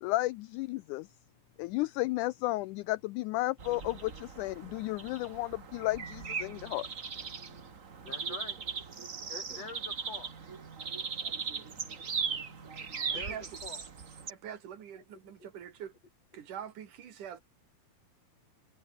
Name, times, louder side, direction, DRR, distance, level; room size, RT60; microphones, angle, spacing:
voice 1, 0.0-1.1 1.6-6.9, left 19 dB, 80° left, 1.9 m, -33 dB
sound 1, 3.6-14.3, right 5 dB, 35° right, 1.3 m, -39 dB
voice 2, 8.0-8.6 9.3-10.6 13.0-13.8 14.9-15.5, left 4 dB, 50° left, 6.0 m, -46 dB
voice 3, 13.1-13.4 14.3-15.9 16.3-17.4, right 9 dB, 70° right, 3.5 m, -44 dB
omnidirectional pair, 3.8 m